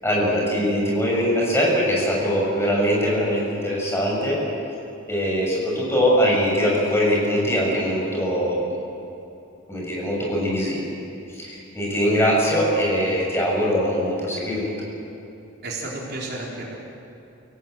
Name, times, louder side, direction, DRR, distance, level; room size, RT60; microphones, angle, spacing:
voice 1, 0.0-4.4 5.1-8.7 9.7-10.9 11.3-14.8, equal, 10° left, -3 dB, 6.8 m, -22 dB
voice 2, 15.6-16.8, right 2 dB, 50° right, -3 dB, 4.2 m, -32 dB
29.0 x 18.0 x 7.8 m, 2.8 s
head